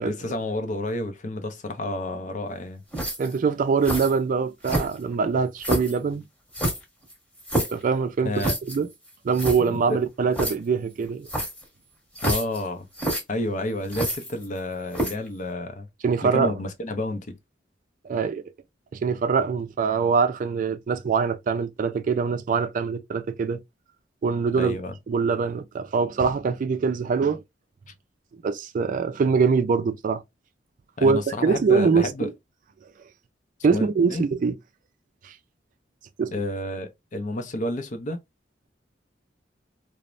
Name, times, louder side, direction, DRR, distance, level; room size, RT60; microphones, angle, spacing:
voice 1, 0.0-2.8 8.2-8.5 9.6-10.0 12.2-12.9 13.3-15.9 16.2-17.4 24.5-24.9 31.0-32.3 33.7-34.2 36.3-38.2, left 1 dB, 45° left, 0.5 m, -30 dB
Boot & spurs, 2.9-3.4 3.8-4.1 4.6-5.1 5.6-6.0 6.5-7.8 8.4-8.8 9.1-9.2 9.3-9.6 10.3-10.5 11.3-11.6 12.2-12.6 12.9-13.2 13.9-14.6 14.9-15.3, right 1 dB, 5° left, 1.1 m, -27 dB
voice 2, 3.2-6.2 7.7-8.3 8.7-8.9 9.2-11.3 16.0-16.5 18.0-18.4 18.9-23.6 24.2-24.8 25.1-27.4 28.4-30.2 31.0-32.3 33.6-34.5 35.2-35.3 36.2-36.3, right 5 dB, 45° right, 0.3 m, -23 dB
3.0 x 2.0 x 2.4 m
head